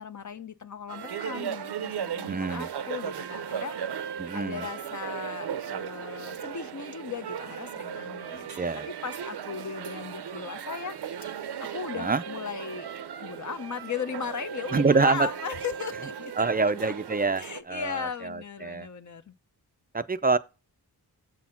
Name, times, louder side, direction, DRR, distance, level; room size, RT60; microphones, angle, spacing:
voice 1, 0.0-8.5 8.8-11.0 11.2-12.9 13.2-16.9 17.4-19.3, left 6 dB, 50° left, 0.8 m, -37 dB
sound 1, 0.9-17.6, right 8 dB, 85° right, 0.7 m, -37 dB
voice 2, 2.2-2.7 4.2-4.7 8.6-8.9 12.0-12.2 14.7-15.3 16.4-18.9 19.9-20.4, right 4 dB, 25° right, 0.4 m, -26 dB
7.6 x 4.2 x 5.8 m
wide cardioid pair, 105°, 38 cm